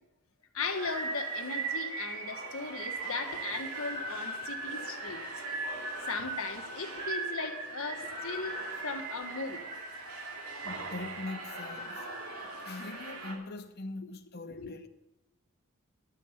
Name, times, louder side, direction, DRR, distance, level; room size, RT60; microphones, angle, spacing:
voice 1, 0.5-5.2 6.1-9.6 14.0-14.1 14.5-14.8, left 4 dB, 70° left, 1.6 m, -38 dB
sound 1, 0.6-13.3, right 3 dB, 85° right, 2.7 m, -38 dB
voice 2, 10.6-12.1 12.5-14.9, left 2 dB, 45° left, 0.8 m, -42 dB
12.5 x 7.5 x 8.1 m
head